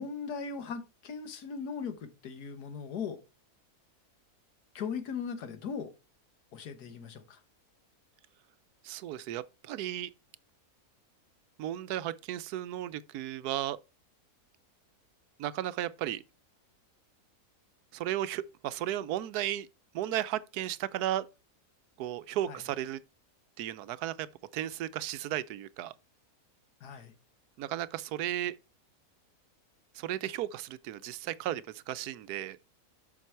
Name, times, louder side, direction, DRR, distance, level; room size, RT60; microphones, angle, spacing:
voice 1, 0.0-3.2 4.7-5.9 6.5-7.4 22.5-22.6 26.8-27.1, left 6 dB, 80° left, 1.7 m, -38 dB
voice 2, 8.8-10.1 11.6-13.8 15.4-16.2 17.9-19.7 19.9-21.3 22.0-23.0 23.6-24.3 24.5-25.9 27.6-28.5 29.9-32.6, right 12 dB, 80° right, 1.1 m, -34 dB
7.3 x 6.0 x 4.5 m
omnidirectional pair, 1.6 m